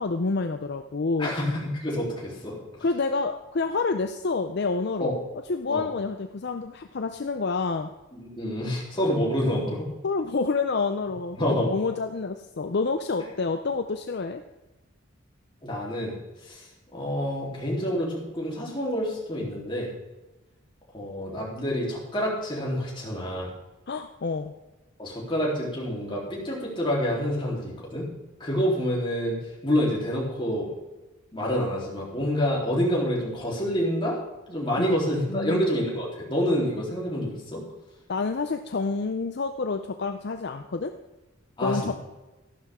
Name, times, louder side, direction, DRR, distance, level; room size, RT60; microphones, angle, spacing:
voice 1, 0.0-1.3 2.8-5.2 5.5-7.9 10.0-14.4 23.9-24.5 34.8-34.9 35.3-35.7 38.1-40.9 41.6-41.9, left 4 dB, 55° left, 7 dB, 0.5 m, -28 dB
voice 2, 1.2-2.8 5.0-5.1 5.7-5.8 8.1-9.9 11.4-11.7 15.6-16.2 16.4-19.9 20.9-23.5 25.0-28.1 28.4-30.7 31.3-34.2 34.5-37.6 41.6-41.9, equal, 25° left, -4 dB, 3.4 m, -27 dB
14.0 x 11.5 x 3.6 m, 1.1 s
head